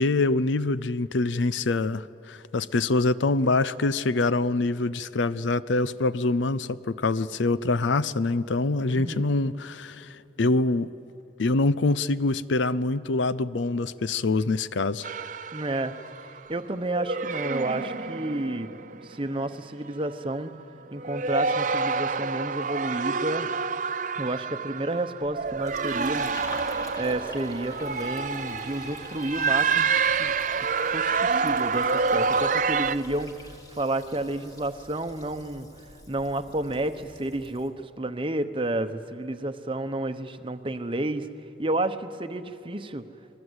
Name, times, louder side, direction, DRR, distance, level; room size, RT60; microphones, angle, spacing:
voice 1, 0.0-10.9 11.4-15.1, left 3 dB, 80° left, 0.6 m, -25 dB
voice 2, 8.9-9.2 15.5-15.9 16.5-18.7 19.0-20.5 20.9-23.5 24.2-26.4 27.0-30.3 30.9-35.7 36.1-41.3 41.6-43.0, right 1 dB, 30° right, 0.9 m, -31 dB
sound 1, 15.0-16.4 16.9-19.3 19.9-20.2 20.9-33.0, right 5 dB, 45° right, 0.6 m, -28 dB
Fill (with liquid), 25.2-37.7, left 1 dB, 20° left, 2.0 m, -45 dB
28.5 x 21.0 x 8.1 m
head